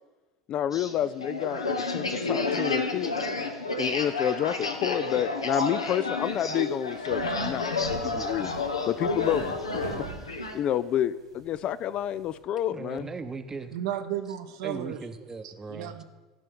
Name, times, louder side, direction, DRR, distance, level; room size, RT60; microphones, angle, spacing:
voice 1, 0.5-3.1 3.8-7.7 8.0-8.5 8.9-9.5 10.0-10.1 10.5-13.1, left 10 dB, 40° left, 16 dB, 0.3 m, -29 dB
sound 1, 0.7-10.6, left 3 dB, 80° left, 0.9 m, -30 dB
sound 2, 6.2-12.4, right 3 dB, 75° right, 2.2 m, -45 dB
voice 2, 12.7-13.7 14.6-16.0, right 4 dB, 20° right, 9 dB, 0.8 m, -38 dB
voice 3, 13.7-15.0 15.4-16.0, right 11 dB, 60° right, 8 dB, 0.8 m, -34 dB
14.5 x 5.4 x 6.9 m, 1.2 s
figure-of-eight pair, 75°, 3 cm